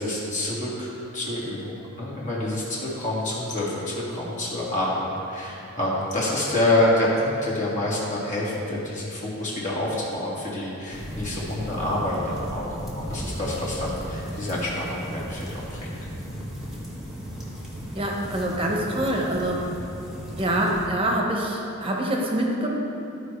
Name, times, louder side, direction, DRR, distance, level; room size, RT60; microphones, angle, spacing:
voice 1, 0.0-15.9, left 1 dB, 35° left, -6 dB, 1.9 m, -27 dB
sound 1, 10.9-20.9, equal, ahead, 1.3 m, -36 dB
voice 2, 17.9-19.7 20.4-22.7, right 1 dB, 25° right, -1 dB, 1.0 m, -25 dB
13.5 x 4.9 x 3.3 m, 2.9 s
head